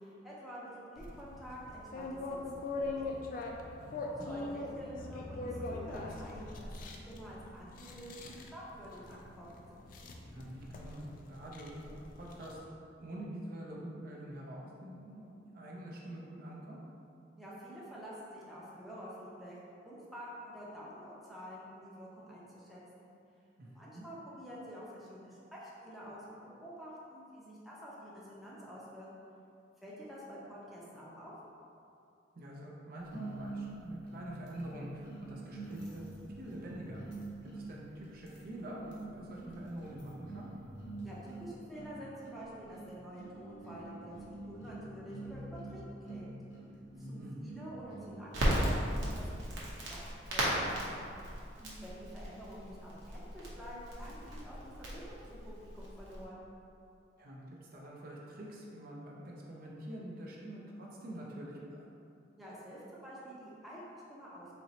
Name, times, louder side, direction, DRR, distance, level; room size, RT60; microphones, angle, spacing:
voice 1, 0.0-2.4 2.6-3.0 4.0-9.6 17.4-19.6 19.9-23.1 23.7-29.1 29.8-31.3 41.0-46.4 47.0-51.0 51.6-56.4 62.4-64.5, equal, ahead, -8 dB, 0.6 m, -48 dB
sound 1, 1.0-12.6, left 2 dB, 50° left, 0.3 m, -42 dB
voice 2, 3.9-4.3 10.2-12.6 13.0-15.3 15.5-16.8 23.6-24.0 32.3-36.0 36.4-40.5 47.0-47.4 57.2-61.8, right 1 dB, 50° right, -3 dB, 0.5 m, -46 dB
sound 2, 33.1-48.6, right 2 dB, 70° left, 0.7 m, -47 dB
Crackle, 48.3-56.2, right 1 dB, 80° right, 0.8 m, -36 dB
4.1 x 2.9 x 2.8 m, 2.6 s
head